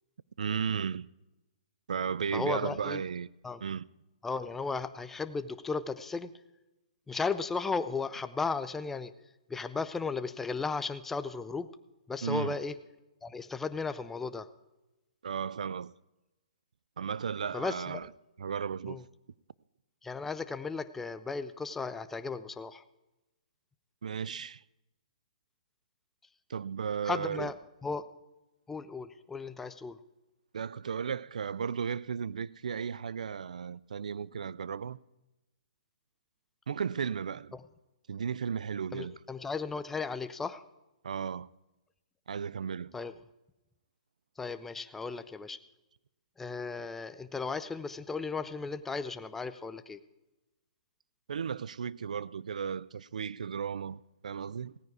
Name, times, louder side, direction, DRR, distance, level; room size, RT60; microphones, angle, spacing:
voice 1, 0.4-1.1 1.9-3.3 3.6-3.8 12.2-12.6 15.2-15.9 17.0-18.1 18.4-19.0 24.0-24.6 26.5-27.5 30.5-35.0 36.7-37.6 38.1-39.1 41.0-41.5 42.3-42.9 51.3-54.8, right 7 dB, 80° right, 0.4 m, -35 dB
voice 2, 2.3-3.0 3.4-3.6 4.2-6.3 7.1-9.1 9.5-11.7 12.1-12.7 13.2-14.5 17.5-17.8 18.9-19.0 20.0-22.8 27.0-27.6 27.8-28.0 28.7-30.0 38.9-40.6 42.9-43.1 44.4-45.6 46.4-50.0, left 4 dB, 5° left, 0.4 m, -35 dB
16.5 x 9.5 x 4.7 m
hypercardioid pair, 150°, 4 cm